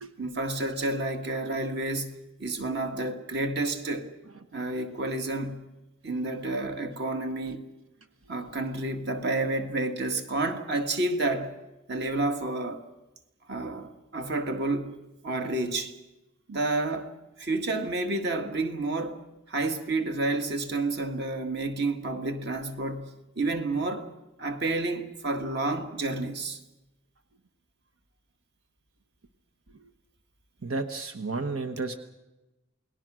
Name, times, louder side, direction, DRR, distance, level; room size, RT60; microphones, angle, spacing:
voice 1, 0.2-4.1 4.5-5.6 6.0-7.6 8.3-11.6 11.9-12.8 13.5-16.0 16.5-17.1 17.4-19.2 19.5-24.1 24.4-26.6, right 2 dB, 55° right, 1.9 m, -30 dB
voice 2, 30.6-32.0, right 3 dB, 85° right, 1.2 m, -32 dB
28.5 x 19.5 x 6.3 m
head